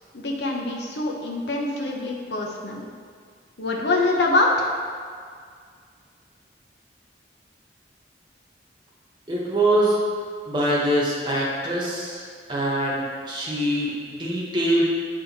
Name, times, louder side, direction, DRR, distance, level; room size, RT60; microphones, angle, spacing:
voice 1, 0.1-2.9 3.6-4.7, left 2 dB, 70° left, 0 dB, 0.9 m, -24 dB
voice 2, 9.3-10.0 10.5-12.2 12.5-14.8, right 1 dB, 25° right, -5 dB, 1.1 m, -23 dB
7.5 x 3.5 x 4.1 m, 2.1 s
head